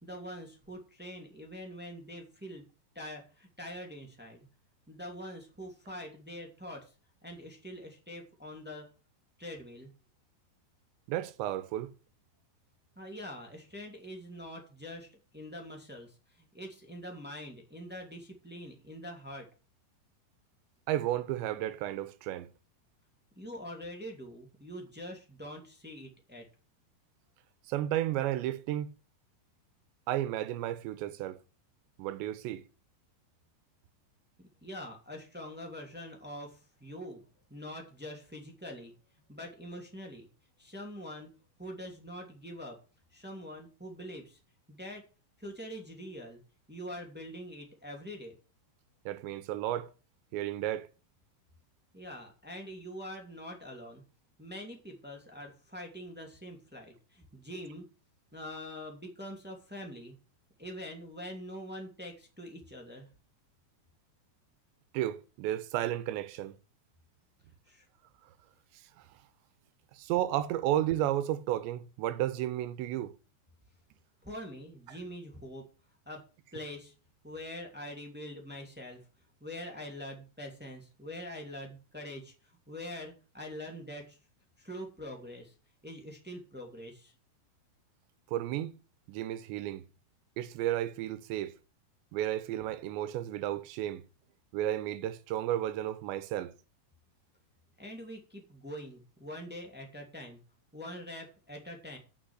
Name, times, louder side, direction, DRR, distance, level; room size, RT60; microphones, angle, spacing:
voice 1, 0.0-2.6 2.9-4.4 4.9-6.9 7.2-8.9 9.4-9.9 12.9-19.5 23.3-26.5 34.4-37.2 37.5-38.9 39.3-40.3 40.6-41.3 41.6-42.8 43.1-44.4 44.7-45.0 45.4-46.4 46.7-48.3 51.9-54.0 54.4-57.9 58.3-60.1 60.6-63.1 67.6-67.8 74.2-75.6 76.0-76.2 76.5-76.9 77.2-79.0 79.4-84.2 84.6-85.5 85.8-87.1 97.8-100.4 100.7-102.0, equal, 5° right, 1.3 m, -44 dB
voice 2, 11.1-11.9 20.9-22.5 27.7-28.9 30.1-31.4 32.0-32.6 49.1-49.9 50.3-50.9 64.9-66.6 69.9-73.1 88.3-88.8 89.1-89.8 90.4-91.5 92.1-94.0 94.5-96.5, right 13 dB, 85° right, 3.1 m, -33 dB
8.6 x 6.4 x 8.2 m
omnidirectional pair, 5.0 m